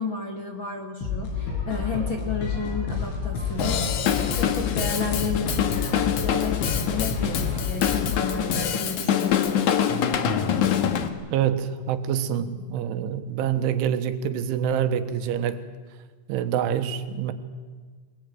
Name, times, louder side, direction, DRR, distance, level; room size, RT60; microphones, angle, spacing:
voice 1, 0.0-3.9 4.3-9.6, left 5 dB, 45° left, 3 dB, 1.6 m, -32 dB
sound 1, 1.0-8.4, left 5 dB, 80° left, 7.2 m, -30 dB
Drum kit / Drum, 3.6-11.1, left 8 dB, 65° left, 2.0 m, -25 dB
voice 2, 11.3-15.6 16.3-17.3, right 9 dB, 85° right, 10 dB, 3.7 m, -26 dB
23.5 x 21.0 x 9.4 m, 1.4 s
omnidirectional pair, 5.5 m